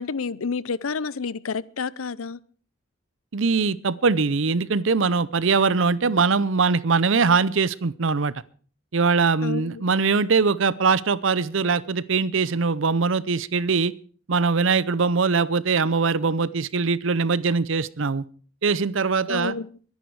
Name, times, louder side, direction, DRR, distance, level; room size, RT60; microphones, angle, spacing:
voice 1, 0.0-2.4 9.4-9.8 19.3-19.8, left 5 dB, 85° left, 20 dB, 0.6 m, -29 dB
voice 2, 3.3-8.3 8.9-13.9 14.3-18.2 18.6-19.6, right 4 dB, 65° right, 19 dB, 0.7 m, -22 dB
23.0 x 10.5 x 4.8 m, 0.43 s
head